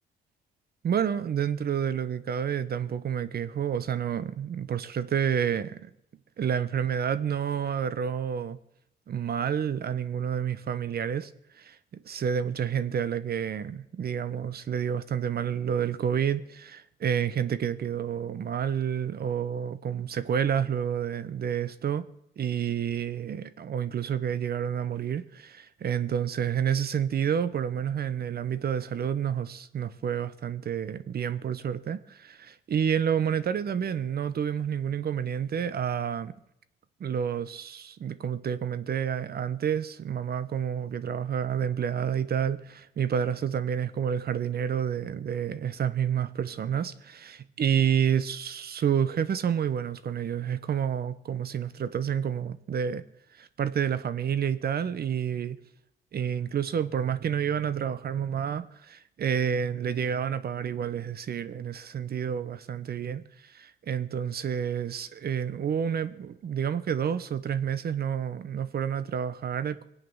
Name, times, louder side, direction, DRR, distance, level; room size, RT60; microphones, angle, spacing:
voice 1, 0.8-5.9 6.4-8.6 9.1-11.3 11.6-11.8 12.0-22.0 22.4-36.3 37.0-53.0 53.4-55.6 56.1-69.8, right 8 dB, 50° right, 1.0 m, -29 dB
21.5 x 8.6 x 7.1 m
cardioid pair, 90°, 20 cm